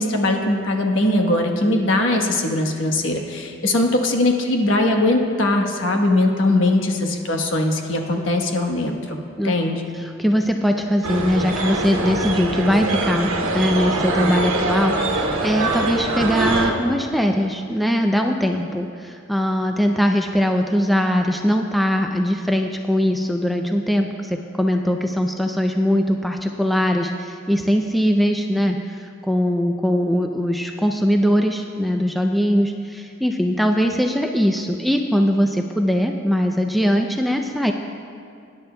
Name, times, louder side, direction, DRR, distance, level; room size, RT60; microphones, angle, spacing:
voice 1, 0.0-9.2 9.4-9.9, left 2 dB, 70° left, 2 dB, 1.2 m, -20 dB
voice 2, 9.9-37.7, equal, ahead, 3 dB, 0.4 m, -21 dB
sound 1, 11.0-16.7, right 2 dB, 85° right, 1.1 m, -23 dB
20.0 x 10.5 x 2.2 m, 2.4 s
head